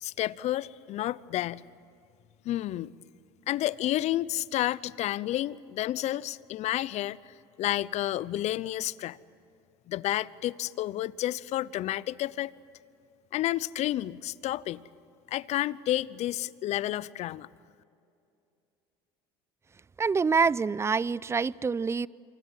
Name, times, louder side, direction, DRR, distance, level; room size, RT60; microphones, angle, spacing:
voice 1, 0.0-1.6 2.4-2.9 3.5-7.2 7.6-9.2 9.9-12.5 13.3-14.8 15.3-17.5, left 14 dB, 55° left, 0.8 m, -30 dB
voice 2, 20.0-22.1, right 5 dB, 20° right, 0.6 m, -26 dB
28.0 x 24.5 x 7.7 m
supercardioid pair, 85°, 13 cm